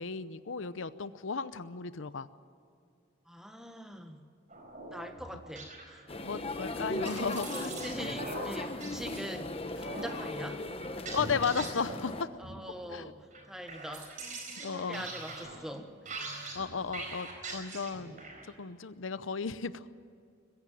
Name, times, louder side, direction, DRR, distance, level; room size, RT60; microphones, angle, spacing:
voice 1, 0.0-2.3 6.2-7.7 11.1-12.3 12.9-13.1 14.6-15.0 16.5-18.2 18.6-19.9, left 5 dB, 90° left, 14 dB, 0.8 m, -35 dB
voice 2, 3.3-4.2 4.9-6.0 6.8-10.6 12.4-15.9, equal, 5° right, 6 dB, 1.4 m, -43 dB
sound 1, 4.5-6.2 6.7-9.2 9.8-10.2 10.8-12.2 12.4-13.0 13.3-18.5, right 3 dB, 40° right, 4.3 m, -43 dB
sound 2, 6.1-12.2, left 2 dB, 30° left, 1.0 m, -38 dB
21.5 x 15.5 x 9.2 m, 2.4 s
head